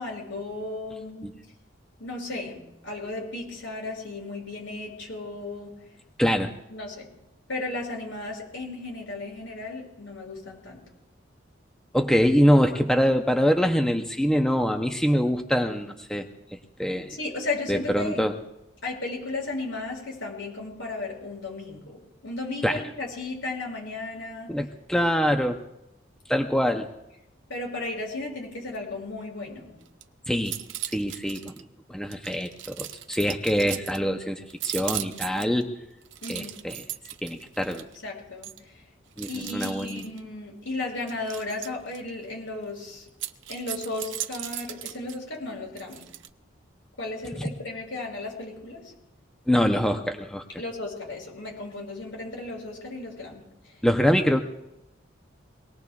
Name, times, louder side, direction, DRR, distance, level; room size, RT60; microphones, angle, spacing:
voice 1, 0.0-1.3 2.0-5.7 6.7-7.1 7.5-10.8 17.1-18.2 18.8-24.5 27.5-29.7 36.2-36.6 38.0-38.8 39.3-43.1 43.5-46.1 47.0-48.9 50.6-53.4, left 2 dB, 75° left, -1 dB, 6.6 m, -35 dB
voice 2, 6.2-6.5 11.9-16.3 16.8-17.2 17.7-18.4 22.6-22.8 24.5-25.6 26.3-26.9 30.3-30.6 30.9-35.8 36.3-36.8 37.2-37.9 39.2-40.0 49.5-50.6 53.8-54.4, equal, 5° left, 4 dB, 0.6 m, -24 dB
munition shells, 29.8-30.0 30.3-31.6 32.1-34.0 34.5-35.6 36.0-37.9 38.4-38.6 39.2-40.2 41.1-42.0 43.1-45.2 45.8-46.3, right 13 dB, 70° right, 0.7 m, -37 dB
24.5 x 19.5 x 2.4 m, 0.90 s
head